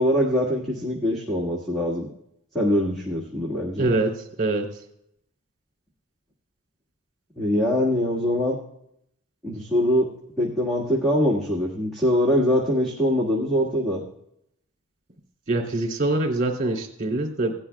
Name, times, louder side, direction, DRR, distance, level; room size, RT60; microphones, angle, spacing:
voice 1, 0.0-2.1 2.5-3.9 7.4-8.6 9.4-10.1 10.4-14.0, equal, ahead, -6 dB, 1.7 m, -23 dB
voice 2, 3.8-4.1 4.4-4.7 15.5-17.5, right 2 dB, 35° right, 0 dB, 2.8 m, -24 dB
17.5 x 11.0 x 2.3 m, 0.76 s
head